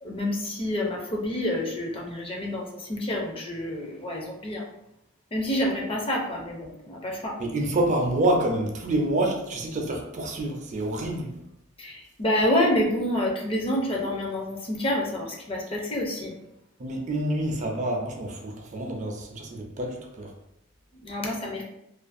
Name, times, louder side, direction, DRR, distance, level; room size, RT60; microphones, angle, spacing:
voice 1, 0.0-4.6 5.3-7.4 11.8-16.4 21.0-21.6, left 1 dB, 25° left, -1 dB, 0.5 m, -28 dB
voice 2, 7.4-11.3 16.8-20.3, right 1 dB, 40° right, 1 dB, 0.4 m, -27 dB
2.4 x 2.3 x 2.5 m, 0.83 s
head